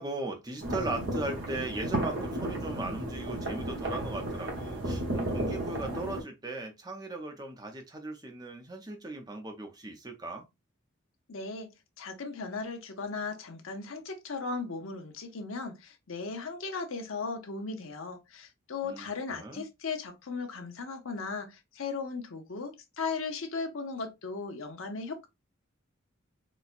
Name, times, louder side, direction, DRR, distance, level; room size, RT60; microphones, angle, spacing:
voice 1, 0.0-10.5 18.8-19.7, right 2 dB, 20° right, 0.6 m, -38 dB
sound 1, 0.6-6.2, right 1 dB, 60° right, 1.0 m, -33 dB
voice 2, 11.3-11.7 12.0-25.3, left 4 dB, 80° left, 0.8 m, -37 dB
4.1 x 2.2 x 2.4 m
head